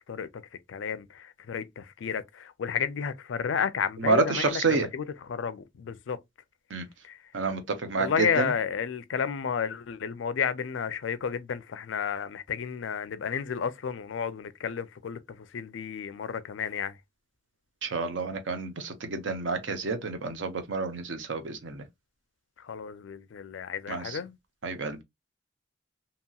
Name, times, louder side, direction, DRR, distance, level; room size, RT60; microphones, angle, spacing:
voice 1, 0.7-6.2 7.0-7.2 8.0-16.9 22.6-24.3, left 7 dB, 85° left, 0.4 m, -32 dB
voice 2, 4.0-4.9 6.7-6.8 7.3-8.5 17.8-21.8 23.9-24.2 24.6-25.0, right 3 dB, 85° right, 0.7 m, -29 dB
2.9 x 2.8 x 2.3 m
head